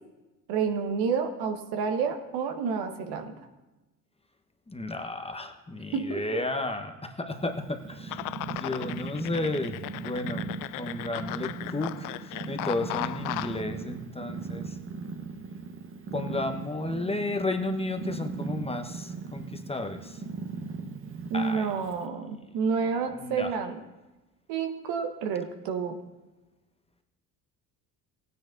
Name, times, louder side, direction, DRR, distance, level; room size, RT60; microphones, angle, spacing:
voice 1, 0.5-3.3 5.9-6.4 21.3-23.8 24.5-26.0, right 5 dB, 60° right, 6 dB, 1.3 m, -29 dB
voice 2, 4.7-8.2 8.5-10.4 10.8-14.8 16.1-20.2 21.3-21.7 23.1-23.5, left 2 dB, 15° left, 6 dB, 1.1 m, -33 dB
Purr, 7.3-22.1, right 4 dB, 30° right, 1.1 m, -39 dB
sound 1, 8.1-13.6, left 17 dB, 50° left, 0.4 m, -37 dB
19.0 x 9.5 x 2.6 m, 1.1 s
figure-of-eight pair, 55°, 44 cm